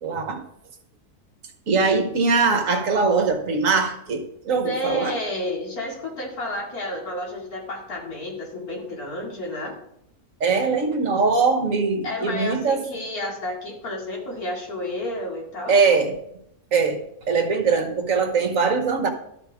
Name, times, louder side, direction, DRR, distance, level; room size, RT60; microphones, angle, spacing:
voice 1, 0.0-0.4 1.7-5.1 10.4-12.8 15.7-16.2 16.7-19.1, right 4 dB, 60° right, 7 dB, 1.5 m, -21 dB
voice 2, 4.6-9.7 12.0-15.7, left 1 dB, 70° left, -1 dB, 3.0 m, -31 dB
12.0 x 8.6 x 3.6 m, 0.74 s
omnidirectional pair, 1.6 m